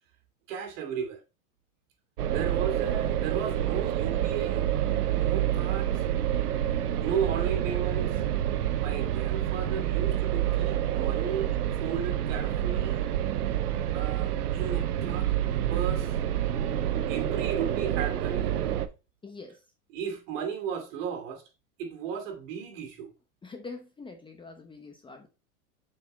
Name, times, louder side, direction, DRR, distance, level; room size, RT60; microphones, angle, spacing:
voice 1, 0.5-1.2 2.3-4.6 5.2-6.0 7.0-8.2 8.8-11.5 11.8-13.0 13.9-15.3 15.7-16.1 17.1-18.5 19.9-21.4 21.8-23.1, right 7 dB, 60° right, 2.7 m, -34 dB
sound 1, 2.2-18.9, right 11 dB, 85° right, 1.0 m, -28 dB
voice 2, 19.2-19.6 23.4-25.3, left 3 dB, 10° left, 0.9 m, -44 dB
6.8 x 5.0 x 4.2 m
supercardioid pair, 130°, 44 cm